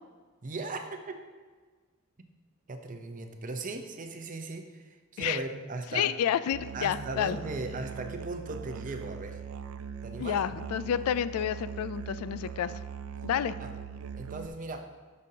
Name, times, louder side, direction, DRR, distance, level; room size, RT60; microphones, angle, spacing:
voice 1, 0.4-1.2 2.7-6.1 6.7-9.4 10.0-10.4 13.6-13.7 14.1-14.9, right 2 dB, 40° right, 5 dB, 0.7 m, -38 dB
voice 2, 5.9-7.4 10.2-12.7 13.2-13.5, left 9 dB, 85° left, 17 dB, 0.3 m, -29 dB
Musical instrument, 6.5-14.5, right 7 dB, 75° right, 0.4 m, -41 dB
12.0 x 5.3 x 2.8 m, 1.5 s
head